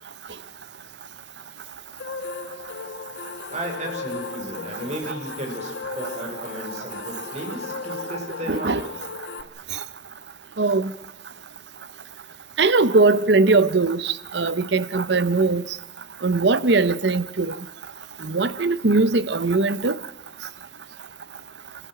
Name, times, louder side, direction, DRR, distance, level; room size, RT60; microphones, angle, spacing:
sound 1, 2.0-9.4, left 4 dB, 80° left, 1.4 m, -35 dB
voice 1, 3.5-8.8, right 1 dB, 40° right, 6.0 m, -34 dB
voice 2, 8.5-8.8 10.6-10.9 12.6-15.6 16.2-17.6 18.2-20.0, right 3 dB, 65° right, 0.8 m, -20 dB
26.5 x 15.0 x 9.2 m
head